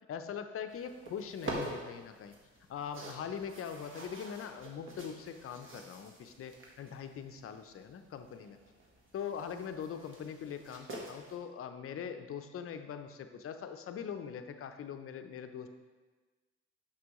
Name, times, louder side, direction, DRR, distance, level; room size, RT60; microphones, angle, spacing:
voice 1, 0.1-2.4 2.7-8.6 9.1-15.7, left 7 dB, 45° left, 8 dB, 0.5 m, -42 dB
sound 1, 0.7-11.4, right 2 dB, 40° right, 1.2 m, -47 dB
6.1 x 6.0 x 3.0 m, 1.3 s
cardioid pair, 90°, 30 cm